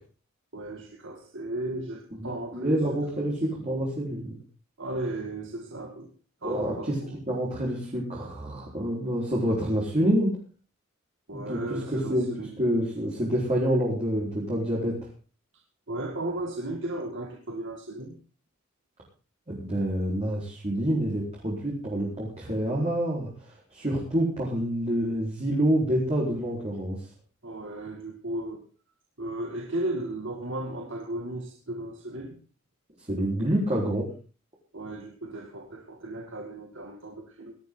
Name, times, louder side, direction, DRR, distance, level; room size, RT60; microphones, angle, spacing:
voice 1, 0.5-3.4 4.8-6.1 6.4-7.2 11.3-12.6 15.9-18.2 27.4-28.6 29.2-32.4 34.7-37.6, right 1 dB, 60° right, 2 dB, 2.1 m, -35 dB
voice 2, 2.2-4.4 6.4-6.9 7.3-10.4 11.5-11.6 11.9-12.3 12.6-15.0 19.5-23.3 23.7-27.0 33.1-34.1, equal, 30° right, -5 dB, 4.4 m, -27 dB
19.0 x 12.0 x 3.9 m, 0.36 s
head